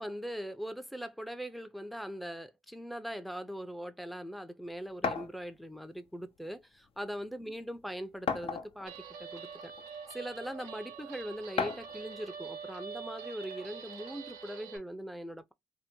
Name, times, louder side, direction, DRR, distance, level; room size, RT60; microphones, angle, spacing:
voice 1, 0.0-9.7 10.1-15.5, equal, ahead, 0.5 m, -41 dB
sound 1, 5.0-5.3 6.4-6.5 7.0-7.1 8.3-8.9 9.7-9.8 11.6-12.0, left 6 dB, 55° left, 0.6 m, -33 dB
Guitar, 8.9-14.8, right 6 dB, 85° right, 0.5 m, -45 dB
2.7 x 2.0 x 3.5 m
hypercardioid pair, 45°, 11 cm